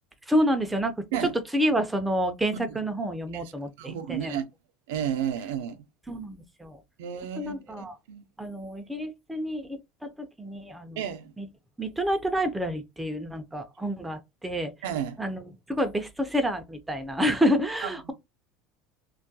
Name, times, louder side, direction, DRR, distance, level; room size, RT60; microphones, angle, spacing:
voice 1, 0.3-0.9 1.2-4.4 6.1-6.8 7.4-8.0 8.4-11.0 11.4-11.5 11.8-14.7 15.2-15.4 15.7-18.1, equal, 5° right, 0.4 m, -28 dB
voice 2, 3.8-4.5 4.9-5.8 7.0-8.2 11.0-11.3 14.8-15.2 17.8-18.1, right 9 dB, 90° right, 0.4 m, -32 dB
2.2 x 2.1 x 2.6 m
supercardioid pair, 130°, 0 cm